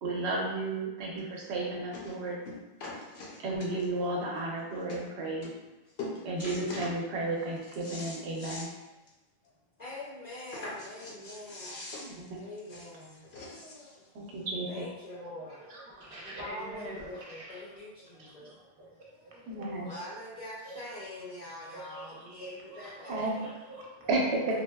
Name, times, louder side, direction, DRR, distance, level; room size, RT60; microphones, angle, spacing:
voice 1, 0.0-2.4 3.4-5.5 6.2-8.7 12.0-12.5 14.1-14.8 19.5-19.9 23.1-23.3 24.1-24.2 24.5-24.6, right 2 dB, 90° right, -2 dB, 1.0 m, -33 dB
sound 1, 1.2-1.3 1.9-2.2 2.5-4.1 4.6-4.7 4.9-5.1 5.4-5.7 6.0-7.0 7.4-8.7 9.1-9.2 9.5-9.6 10.5-13.9 14.8-14.9, left 2 dB, 80° left, 0.9 m, -42 dB
voice 2, 9.8-14.3 14.7-15.6 16.0-18.5 18.9-23.6 24.3-24.6, left 1 dB, 50° left, -8 dB, 0.6 m, -45 dB
voice 3, 15.4-17.7 18.1-19.0 19.2-20.2 20.6-21.0 21.6-24.2, right 2 dB, 40° right, -4 dB, 0.6 m, -46 dB
4.0 x 2.1 x 2.2 m, 1.0 s
omnidirectional pair, 1.1 m